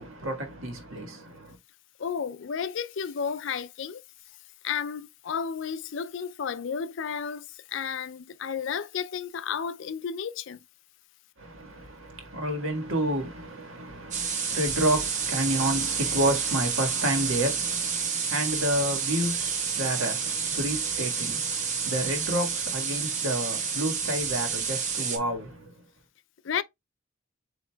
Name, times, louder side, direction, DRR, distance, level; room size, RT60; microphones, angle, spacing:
voice 1, 0.0-1.6 11.4-25.7, right 1 dB, 80° right, 1.6 m, -30 dB
voice 2, 2.0-4.0 4.6-10.6 26.4-26.6, left 7 dB, 65° left, 0.4 m, -32 dB
sound 1, 14.1-25.2, right 6 dB, 35° right, 0.9 m, -29 dB
7.6 x 2.9 x 2.2 m
head